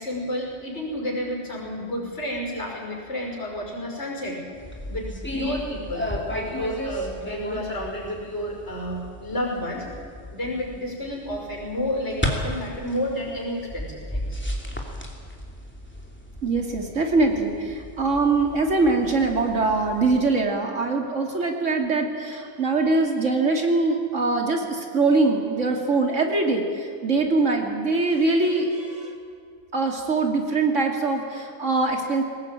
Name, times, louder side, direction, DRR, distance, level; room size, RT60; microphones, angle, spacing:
voice 1, 0.0-4.4 4.9-9.9 10.3-14.4, left 1 dB, 65° left, -1 dB, 5.9 m, -31 dB
sound 1, 4.5-20.4, equal, 10° left, 2.8 m, -34 dB
voice 2, 16.4-29.1 29.7-32.2, right 3 dB, 85° right, 3 dB, 3.0 m, -23 dB
21.0 x 18.5 x 9.0 m, 2.3 s
omnidirectional pair, 1.2 m